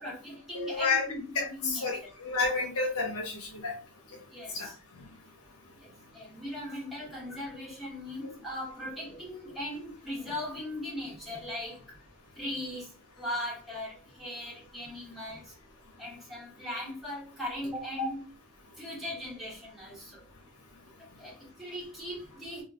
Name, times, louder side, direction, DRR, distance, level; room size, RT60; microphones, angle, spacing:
voice 1, 0.0-1.9 4.3-4.8 5.8-11.8 12.4-15.5 16.0-18.2 18.8-20.2 21.2-22.6, left 1 dB, ahead, 1.6 m, -39 dB
voice 2, 0.5-1.0 1.3-3.7 4.5-4.7, left 4 dB, 80° left, 1.0 m, -30 dB
3.0 x 2.8 x 2.5 m
head